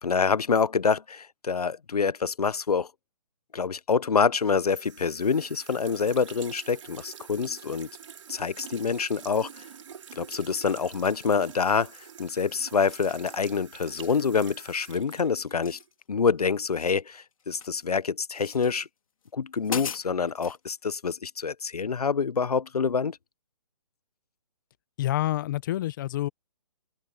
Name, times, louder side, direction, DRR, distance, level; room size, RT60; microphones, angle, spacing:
voice 1, 0.0-2.9 3.5-7.9 8.3-9.6 10.2-11.9 12.2-15.8 16.1-18.9 19.3-23.2, left 5 dB, 90° left, 1.0 m, -26 dB
sound 1, 4.5-15.9, right 8 dB, 55° right, 3.5 m, -46 dB
sound 2, 13.0-13.3 13.8-14.2 14.6-15.0 15.6-16.3 16.5-17.8 18.3-18.7 19.2-19.3 19.6-20.6, left 7 dB, 65° left, 2.7 m, -40 dB
voice 2, 25.0-26.3, left 14 dB, 35° left, 1.0 m, -27 dB
open air
hypercardioid pair, 155°, 19 cm